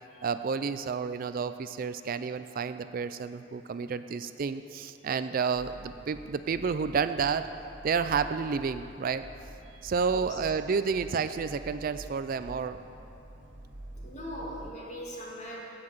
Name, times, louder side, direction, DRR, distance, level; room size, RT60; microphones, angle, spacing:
voice 1, 0.2-7.5 7.8-9.3 9.8-12.8, right 5 dB, 50° right, 11 dB, 0.4 m, -30 dB
sound 1, 5.5-14.7, right 1 dB, 70° right, 1.7 m, -47 dB
voice 2, 9.6-10.4 13.9-15.6, equal, 40° left, -3 dB, 2.3 m, -41 dB
16.0 x 5.9 x 7.7 m, 2.8 s
head